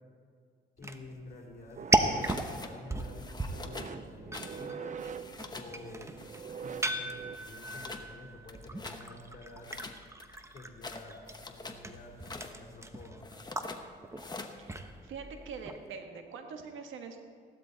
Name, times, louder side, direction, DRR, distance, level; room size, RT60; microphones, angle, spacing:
voice 1, 0.8-6.1 6.6-9.7 10.5-12.2 12.4-13.4, left 2 dB, 45° left, -1 dB, 3.2 m, -49 dB
sound 1, 0.8-15.9, right 2 dB, 15° right, 0.9 m, -36 dB
sound 2, 1.7-7.4, right 7 dB, 40° right, 0.6 m, -44 dB
sound 3, 2.2-2.7 3.0-3.9 4.3-4.7 4.9-5.7 6.2-7.0 7.3-8.1 8.4-9.0 9.6-11.8 12.1-12.5 13.2-13.8 14.2-14.6, left 3 dB, 20° left, 1.1 m, -45 dB
voice 2, 14.6-17.2, right 5 dB, 80° right, 5 dB, 1.5 m, -44 dB
15.5 x 12.0 x 4.1 m, 2.2 s
cardioid pair, 90°, 20 cm